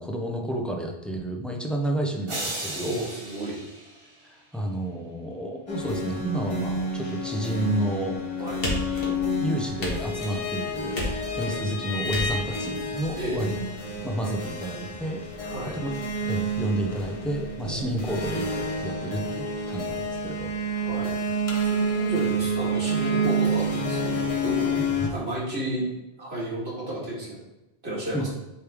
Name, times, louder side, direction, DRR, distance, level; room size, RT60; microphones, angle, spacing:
voice 1, 0.0-3.0 4.2-8.2 9.4-11.1 11.3-13.6 14.0-15.2 15.8-20.5 28.1-28.3, right 1 dB, ahead, 1 dB, 0.6 m, -30 dB
sound 1, 2.3-4.6, right 1 dB, 30° right, 1.0 m, -36 dB
voice 2, 2.7-3.6 8.4-8.6 13.1-13.5 15.4-15.8 17.6-18.0 20.8-21.2 21.6-24.8 25.1-25.9 26.2-27.4 27.8-28.3, right 1 dB, 90° right, -5 dB, 2.2 m, -32 dB
sound 2, 5.7-25.1, right 1 dB, 35° left, 0.9 m, -29 dB
sound 3, 8.6-9.4 9.8-10.4 10.9-11.6 12.1-12.6, left 1 dB, 65° left, 1.6 m, -31 dB
8.4 x 3.3 x 3.5 m, 0.97 s
omnidirectional pair, 1.0 m